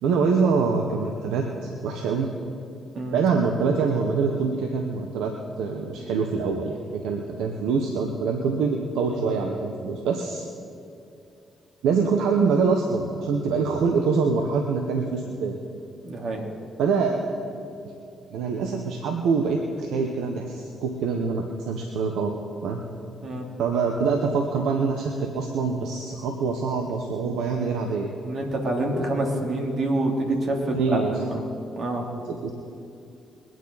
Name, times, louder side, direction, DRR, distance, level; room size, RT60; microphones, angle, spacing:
voice 1, 0.0-2.3 3.1-10.4 11.8-15.6 16.8-17.6 18.3-22.3 22.6-22.8 23.6-28.1 30.7-31.4 32.3-32.5, right 5 dB, 80° right, 3 dB, 1.0 m, -25 dB
voice 2, 16.0-16.4 23.2-23.5 28.2-31.4 31.7-32.1, right 1 dB, 60° right, 1 dB, 3.0 m, -27 dB
22.5 x 9.2 x 4.1 m, 2.6 s
supercardioid pair, 50°, 0 cm